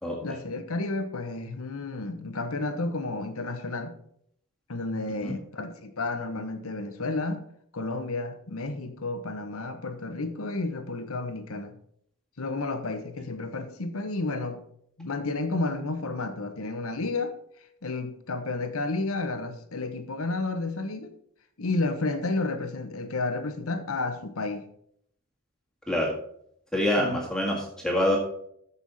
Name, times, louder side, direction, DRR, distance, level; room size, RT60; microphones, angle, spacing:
voice 1, 0.2-4.0 4.7-7.5 7.7-11.7 12.4-14.6 15.0-17.4 17.8-21.1 21.6-24.6 27.0-27.2, left 3 dB, 75° left, 1.1 m, -31 dB
voice 2, 26.7-28.2, left 1 dB, 5° left, 1.8 m, -25 dB
14.0 x 5.6 x 4.2 m
head